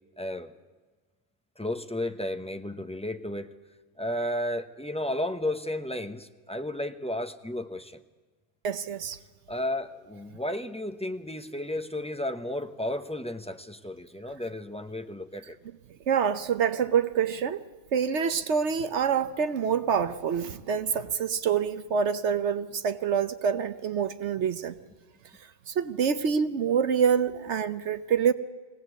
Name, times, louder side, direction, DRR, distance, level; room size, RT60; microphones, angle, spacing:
voice 1, 0.2-0.5 1.6-3.5 4.0-8.0 9.5-15.6, left 1 dB, 5° left, 6 dB, 0.7 m, -33 dB
voice 2, 8.6-9.2 16.1-17.6 17.9-24.7 25.7-28.3, right 7 dB, 70° right, 12 dB, 1.1 m, -26 dB
21.5 x 17.5 x 8.2 m, 1.4 s
omnidirectional pair, 1.2 m